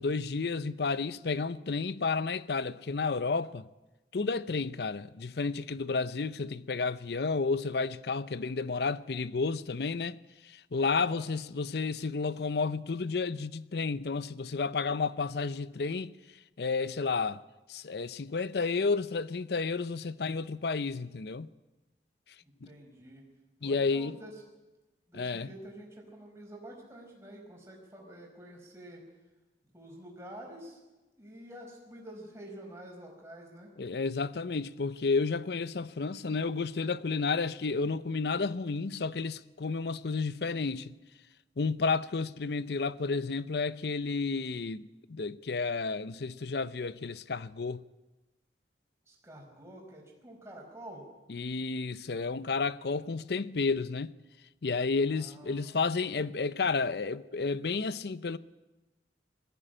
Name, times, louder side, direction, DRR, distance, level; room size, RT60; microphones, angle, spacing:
voice 1, 0.0-3.7 4.1-10.2 10.4-16.1 16.6-17.4 17.7-21.5 22.6-22.7 23.6-24.2 25.1-25.5 33.8-40.9 41.6-47.8 51.3-54.1 54.6-58.4, left 4 dB, 65° left, 0.6 m, -31 dB
voice 2, 10.8-11.3 22.4-23.2 23.6-24.3 25.1-29.0 29.7-30.8 31.2-33.7 49.1-51.0 55.1-56.1, right 1 dB, 15° right, 4.8 m, -48 dB
20.0 x 15.0 x 8.9 m
head